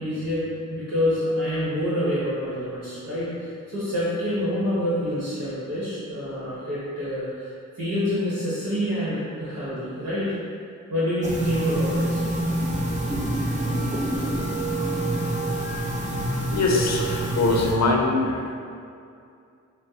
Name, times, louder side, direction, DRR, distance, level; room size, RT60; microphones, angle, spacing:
voice 1, 0.0-10.3 10.9-12.2, equal, 55° right, -10 dB, 1.3 m, -27 dB
sound 1, 11.2-17.7, right 1 dB, 20° right, 0.7 m, -26 dB
voice 2, 16.5-18.4, left 3 dB, 55° left, 0 dB, 0.6 m, -22 dB
5.7 x 2.1 x 2.8 m, 2.4 s
cardioid pair, 45°, 32 cm